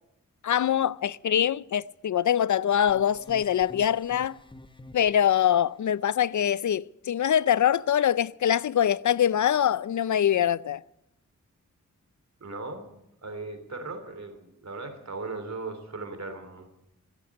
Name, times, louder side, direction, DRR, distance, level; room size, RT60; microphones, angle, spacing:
voice 1, 0.4-4.4 4.9-10.8, left 10 dB, 70° left, 0.5 m, -24 dB
sound 1, 2.9-5.6, left 1 dB, 15° left, 1.1 m, -49 dB
voice 2, 12.4-12.9 13.2-16.7, right 3 dB, 60° right, 3.1 m, -38 dB
15.5 x 8.7 x 9.6 m
wide cardioid pair, 70°, 31 cm